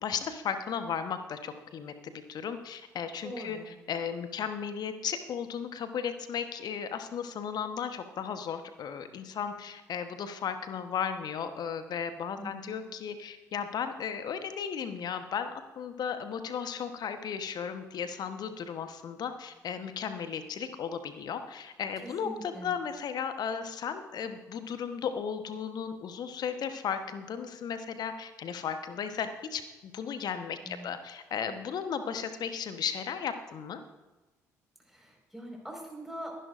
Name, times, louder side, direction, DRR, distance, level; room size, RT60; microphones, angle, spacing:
voice 1, 0.0-15.5 15.8-33.8, left 7 dB, 50° left, 9 dB, 1.1 m, -35 dB
voice 2, 3.2-3.7 12.4-12.8 22.0-22.7 30.6-30.9 34.9-36.3, equal, 5° right, 0 dB, 4.9 m, -42 dB
22.5 x 11.0 x 2.6 m, 1.1 s
figure-of-eight pair, 50°, 9 cm